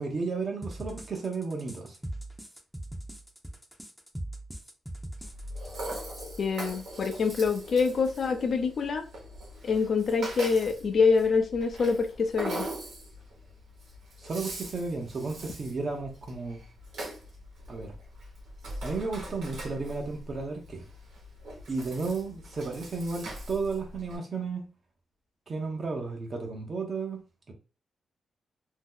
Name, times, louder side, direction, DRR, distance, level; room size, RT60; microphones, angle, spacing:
voice 1, 0.0-2.0 14.2-16.6 17.7-17.9 18.8-20.8 21.7-24.7 25.5-27.5, right 4 dB, 45° right, 0.7 m, -33 dB
sound 1, 0.6-6.2, right 1 dB, 5° right, 0.6 m, -40 dB
Rattle (instrument), 5.2-24.2, right 1 dB, 85° right, 1.1 m, -42 dB
voice 2, 6.4-9.0 9.6-12.7, left 5 dB, 55° left, 0.6 m, -25 dB
2.7 x 2.0 x 3.7 m
cardioid pair, 110°, 0 cm